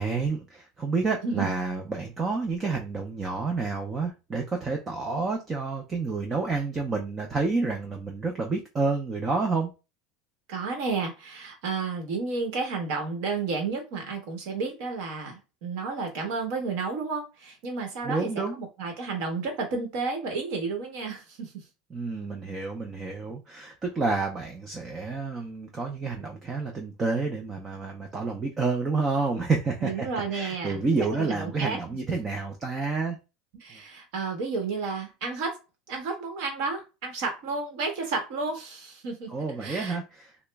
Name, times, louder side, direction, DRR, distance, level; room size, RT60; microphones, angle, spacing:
voice 1, 0.0-9.7 18.0-18.6 21.9-30.1 30.3-33.2 39.3-40.3, right 4 dB, 15° right, 2 dB, 0.4 m, -29 dB
voice 2, 10.5-21.6 29.8-31.8 33.6-35.6 35.9-39.3 39.6-40.0, right 4 dB, 60° right, 3 dB, 0.9 m, -32 dB
3.0 x 2.0 x 3.3 m, 0.28 s
cardioid pair, 180°, 0 cm